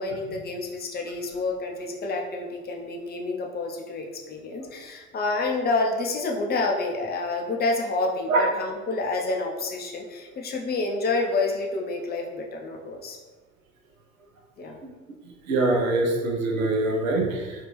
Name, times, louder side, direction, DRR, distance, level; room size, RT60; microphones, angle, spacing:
voice 1, 0.0-13.2 14.6-14.8, left 3 dB, 25° left, 1 dB, 0.5 m, -28 dB
voice 2, 15.5-17.7, right 2 dB, 75° right, 1 dB, 0.7 m, -23 dB
3.6 x 2.4 x 3.0 m, 1.3 s
figure-of-eight pair, 65°, 41 cm